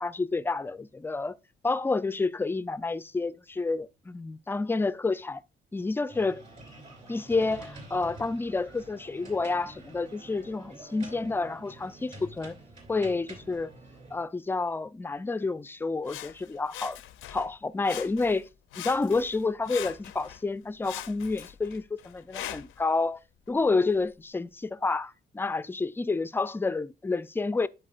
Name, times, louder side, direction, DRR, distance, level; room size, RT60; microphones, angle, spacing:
voice 1, 0.0-1.4 1.6-5.4 5.7-6.4 7.1-12.6 12.9-13.7 14.1-17.0 17.3-18.5 18.8-23.2 23.5-27.7, left 3 dB, 10° left, 0.3 m, -29 dB
sound 1, 6.1-14.2, right 2 dB, 35° right, 2.7 m, -48 dB
Sawing, 16.0-17.5 17.8-18.4 18.7-20.4 20.8-22.8 23.5-23.6, left 13 dB, 80° left, 0.5 m, -42 dB
11.0 x 4.2 x 2.4 m
cardioid pair, 90°, 20 cm